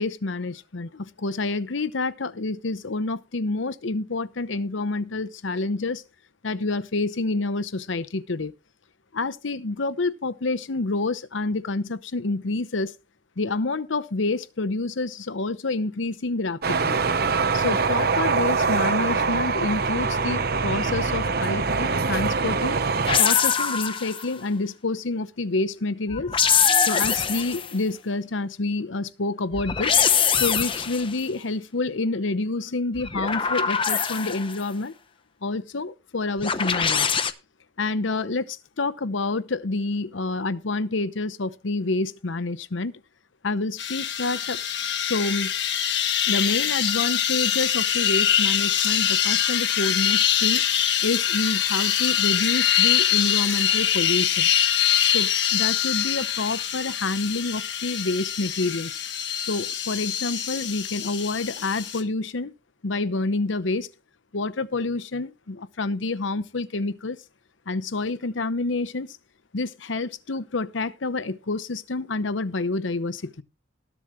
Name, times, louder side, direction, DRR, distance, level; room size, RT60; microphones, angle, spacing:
voice 1, 0.0-6.0 6.4-8.5 9.1-12.9 13.4-17.0 17.5-22.8 23.2-26.3 26.8-30.0 30.3-34.9 35.4-37.1 37.8-42.9 43.4-44.6 45.0-45.5 46.3-50.6 51.0-54.5 55.1-58.9 59.4-62.5 62.8-63.9 64.3-67.2 67.7-69.2 69.5-73.4, left 3 dB, 75° left, 0.8 m, -28 dB
sound 1, 16.6-23.2, right 4 dB, 50° right, 0.8 m, -24 dB
sound 2, 23.1-24.3 26.1-27.7 29.5-31.1 32.9-34.6 36.4-37.3, left 7 dB, 25° left, 0.8 m, -23 dB
sound 3, 43.8-62.0, left 10 dB, 60° left, 1.7 m, -24 dB
19.5 x 7.3 x 3.1 m
head